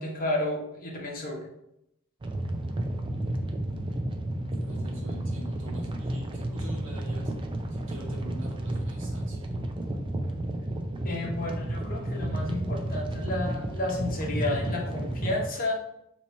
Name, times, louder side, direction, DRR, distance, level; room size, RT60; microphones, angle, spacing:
voice 1, 0.0-1.4 11.0-15.8, left 2 dB, 45° left, -2 dB, 0.9 m, -31 dB
sound 1, 2.2-15.5, right 1 dB, 25° right, 0.4 m, -32 dB
voice 2, 4.3-7.3 7.7-9.4, equal, 65° right, -5 dB, 1.4 m, -46 dB
3.0 x 2.8 x 4.3 m, 0.80 s
head